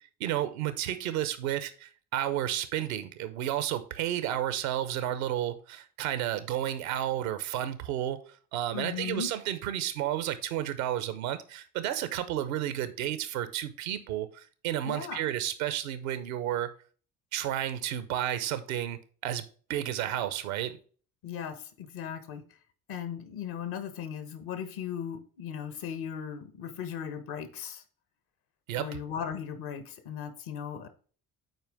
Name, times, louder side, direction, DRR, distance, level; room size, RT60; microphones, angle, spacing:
voice 1, 0.2-16.7 17.3-20.8 28.7-29.0, right 12 dB, 75° right, 0.9 m, -32 dB
voice 2, 8.7-9.3 14.9-15.2 21.2-22.4 22.9-27.8 28.7-30.9, left 8 dB, 65° left, 1.3 m, -37 dB
8.0 x 4.5 x 3.5 m
hypercardioid pair, 55°, 41 cm